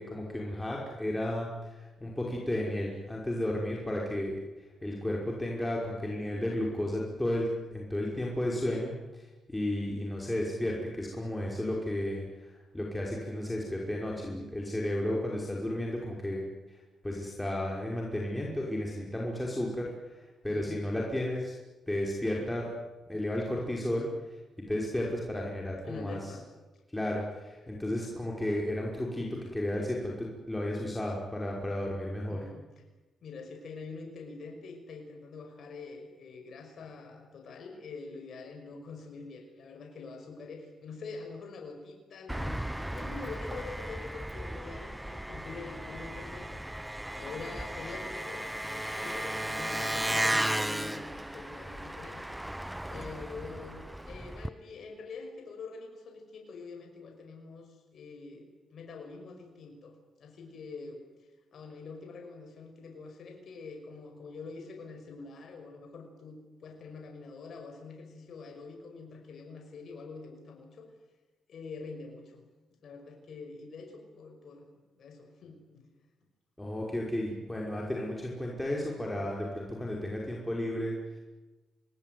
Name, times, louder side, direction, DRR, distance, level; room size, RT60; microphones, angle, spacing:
voice 1, 0.0-4.3 4.8-16.4 16.7-16.8 17.0-20.1 20.4-21.5 21.9-22.7 23.1-24.1 24.7-26.2 26.9-32.4 76.6-81.2, left 1 dB, 10° left, -2 dB, 5.6 m, -33 dB
voice 2, 20.5-20.8 25.8-26.5 32.3-32.8 33.2-52.4 52.9-70.9 71.5-72.4 72.8-75.9, left 4 dB, 65° left, 3 dB, 5.7 m, -45 dB
Engine, 42.3-54.5, right 1 dB, 5° right, 0.9 m, -35 dB
27.0 x 20.5 x 9.6 m, 1.2 s
cardioid pair, 75°, 0 cm